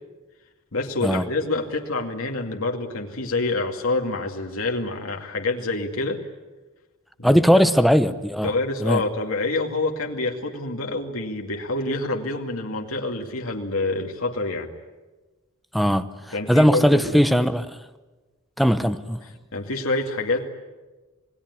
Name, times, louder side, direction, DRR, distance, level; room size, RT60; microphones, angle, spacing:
voice 1, 0.7-6.2 7.2-7.4 8.4-14.7 16.3-17.2 19.5-20.5, left 2 dB, 80° left, 2.3 m, -27 dB
voice 2, 7.2-8.5 8.8-9.0 15.7-17.8 18.6-19.3, equal, ahead, 0.9 m, -19 dB
27.5 x 20.0 x 9.7 m
head